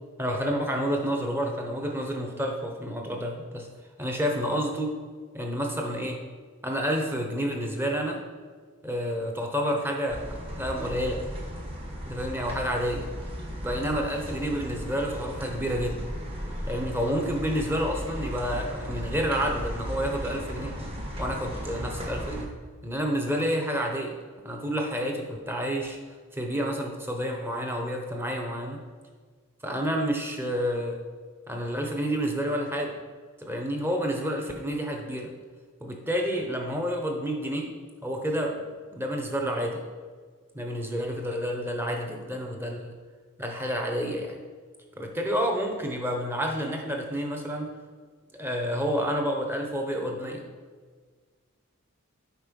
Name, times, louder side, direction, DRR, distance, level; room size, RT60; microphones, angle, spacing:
voice 1, 0.2-3.7 4.0-4.9 5.3-6.2 6.6-8.2 8.8-11.2 12.1-13.1 13.6-16.1 16.7-20.9 21.2-22.5 22.8-24.1 24.4-26.0 26.3-28.8 29.6-31.0 31.5-32.9 33.4-35.3 35.8-37.6 38.0-39.8 40.5-42.9 43.4-44.4 45.0-47.7 48.3-50.4, equal, 10° right, 1 dB, 1.0 m, -29 dB
sound 1, 10.1-22.4, equal, 25° right, 1.4 m, -36 dB
8.6 x 5.1 x 5.3 m, 1.6 s
head